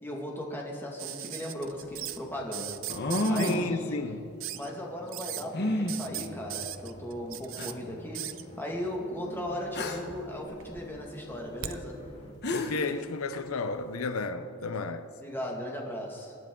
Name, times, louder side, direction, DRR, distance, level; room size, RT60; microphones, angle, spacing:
voice 1, 0.0-2.8 3.3-4.0 4.5-8.3 8.6-12.0 15.2-16.4, left 1 dB, 10° left, 2.0 m, -37 dB
sound 1, 1.0-2.2 2.5-3.6 4.4-4.7 5.1-5.4 5.9-7.7 8.1-8.4 9.5-10.1 10.4-11.8 13.1-13.2, right 13 dB, 65° right, 0.6 m, -38 dB
sound 2, 1.4-1.5 2.9-3.8 5.5-5.9 6.9-7.0 7.6-7.7 9.7-10.1 12.1-12.2 12.4-12.9, left 1 dB, 55° left, 1.2 m, -29 dB
voice 2, 3.4-4.2 12.5-15.1, left 3 dB, 90° left, 0.6 m, -33 dB
sound 3, 3.9-12.3, equal, 30° left, 2.0 m, -49 dB
25.0 x 10.0 x 3.8 m
head